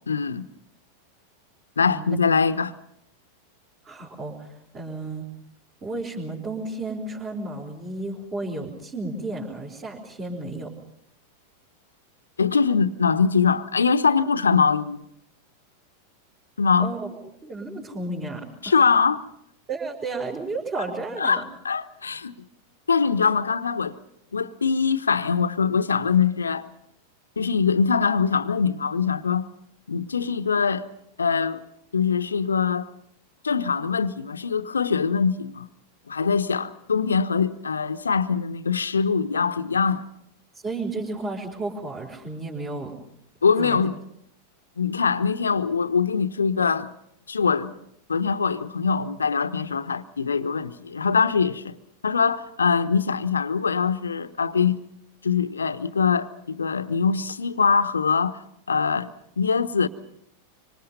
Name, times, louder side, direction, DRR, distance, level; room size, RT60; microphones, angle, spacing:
voice 1, 0.1-0.5 1.8-2.7 12.4-15.0 16.6-16.9 18.6-19.2 21.2-22.3 22.9-24.0 24.3-26.7 27.4-29.5 29.9-30.9 31.2-31.6 31.9-32.9 33.4-35.7 36.1-40.1 43.4-43.9 44.8-46.9 47.3-47.7 48.1-51.7 52.0-54.8 55.2-58.4 58.7-59.1 59.4-59.9, left 5 dB, 75° left, 1.0 m, -23 dB
voice 2, 1.8-2.1 3.8-5.3 5.8-10.7 16.8-17.1 17.4-18.8 19.7-21.4 40.6-42.9 43.6-43.8, right 2 dB, 25° right, 4.7 m, -32 dB
26.0 x 25.5 x 5.4 m
figure-of-eight pair, 90°, 0 cm